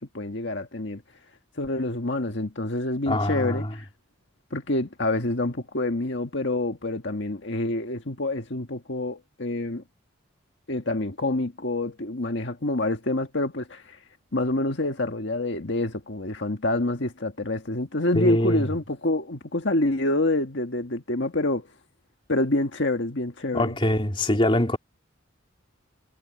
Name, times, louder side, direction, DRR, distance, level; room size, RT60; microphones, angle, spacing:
voice 1, 0.1-1.0 1.6-3.9 4.5-9.8 10.7-14.0 14.3-21.7 22.3-23.8, left 2 dB, 60° left, 1.7 m, -27 dB
voice 2, 3.1-3.7 18.1-18.7 23.5-24.8, left 1 dB, 25° left, 3.1 m, -23 dB
head